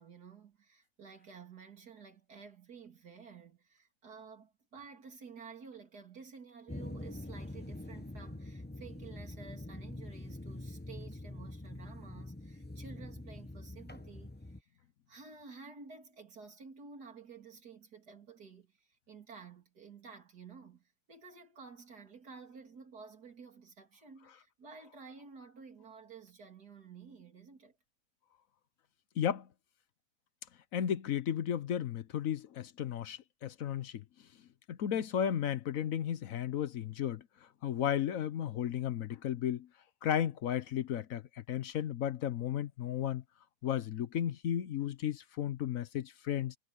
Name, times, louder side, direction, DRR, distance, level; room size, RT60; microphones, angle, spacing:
voice 1, 0.0-14.7 15.1-27.8, right 5 dB, 85° right, 3.6 m, -52 dB
sound 1, 6.7-14.6, left 1 dB, 10° left, 0.8 m, -45 dB
voice 2, 29.2-29.5 30.7-34.0 34.7-37.2 37.6-39.7 40.0-43.2 43.6-46.6, left 9 dB, 65° left, 1.1 m, -34 dB
omnidirectional pair, 1.6 m